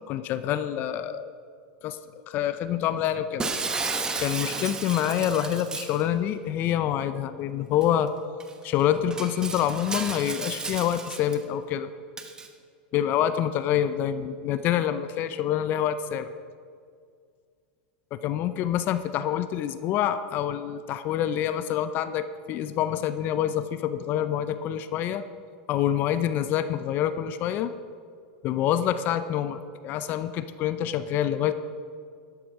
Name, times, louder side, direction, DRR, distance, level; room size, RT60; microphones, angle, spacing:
voice 1, 0.1-1.3 1.8-2.0 2.3-3.5 4.2-8.1 8.6-11.9 12.9-16.3 18.1-25.2 25.7-27.7 28.4-31.5, left 10 dB, 45° left, 12 dB, 0.6 m, -26 dB
Shatter, 3.4-6.0 7.8-7.9 8.4-8.5 9.1-11.4 12.2-12.5, right 4 dB, 15° right, 1.1 m, -33 dB
12.0 x 12.0 x 4.8 m, 2.2 s
supercardioid pair, 120°, 5 cm